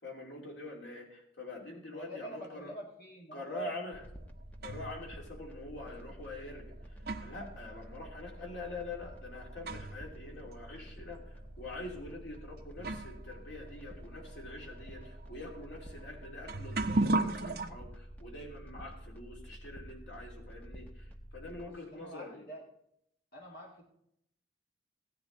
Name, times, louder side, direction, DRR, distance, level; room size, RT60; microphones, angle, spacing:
voice 1, 0.0-2.8 3.3-4.0 4.6-6.9 7.2-22.5, left 2 dB, 85° left, -1 dB, 2.9 m, -45 dB
voice 2, 1.9-3.8 21.6-22.6 23.3-23.8, right 1 dB, 55° left, -2 dB, 2.1 m, -45 dB
sound 1, 3.9-21.7, equal, 10° left, 1.0 m, -49 dB
sound 2, 3.9-5.0 5.9-6.0 6.7-10.1 10.4-10.5 11.3-11.5 12.3-12.4 12.8-17.7, right 2 dB, 55° right, 0.8 m, -37 dB
16.5 x 10.0 x 4.0 m, 0.75 s
head